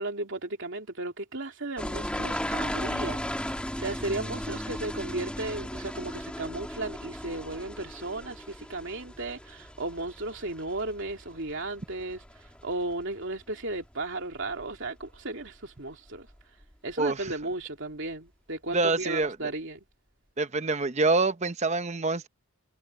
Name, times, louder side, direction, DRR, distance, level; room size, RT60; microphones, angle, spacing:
voice 1, 0.0-3.2 3.8-12.2 12.6-16.3 16.8-19.8, right 2 dB, 60° right, 3.2 m, -35 dB
sound 1, 1.8-13.1 13.4-13.9 14.3-15.2 15.4-15.5 16.3-16.4 16.6-16.7, left 1 dB, 5° left, 2.5 m, -36 dB
voice 2, 18.7-19.3 20.4-22.3, right 3 dB, 30° right, 0.9 m, -26 dB
head